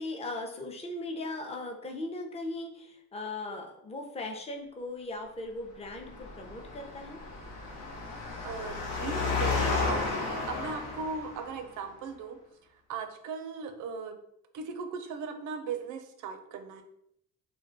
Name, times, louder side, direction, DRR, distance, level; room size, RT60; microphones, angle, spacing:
voice 1, 0.0-7.2, left 2 dB, 20° left, 2 dB, 0.5 m, -38 dB
Engine, 5.9-11.6, left 4 dB, 90° left, 0.7 m, -33 dB
voice 2, 8.4-12.4 12.9-14.2 14.5-16.8, right 5 dB, 90° right, 6 dB, 0.5 m, -38 dB
2.2 x 2.2 x 3.8 m, 0.75 s
cardioid pair, 90°, 30 cm